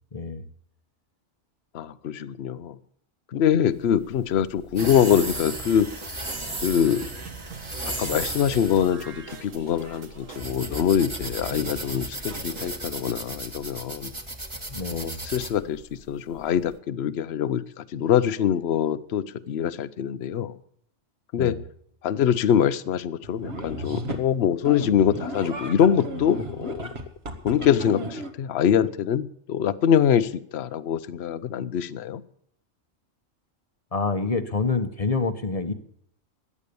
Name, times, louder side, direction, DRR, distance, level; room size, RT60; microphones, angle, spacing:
voice 1, 0.1-0.4 14.7-15.2 21.4-21.6 33.9-35.7, left 4 dB, 30° left, 9 dB, 1.1 m, -27 dB
voice 2, 1.7-2.8 3.3-5.9 6.6-7.1 8.0-14.1 14.9-20.6 21.3-21.5 22.0-26.9 27.4-32.2, left 9 dB, 60° left, 16 dB, 0.9 m, -24 dB
sound 1, 3.8-16.7, right 1 dB, 25° right, 1.8 m, -35 dB
sound 2, 4.8-12.8, right 6 dB, 80° right, 1.7 m, -43 dB
sound 3, 23.2-24.3 24.6-28.3, right 1 dB, 50° right, 2.1 m, -34 dB
17.0 x 11.0 x 6.9 m, 0.67 s
omnidirectional pair, 1.3 m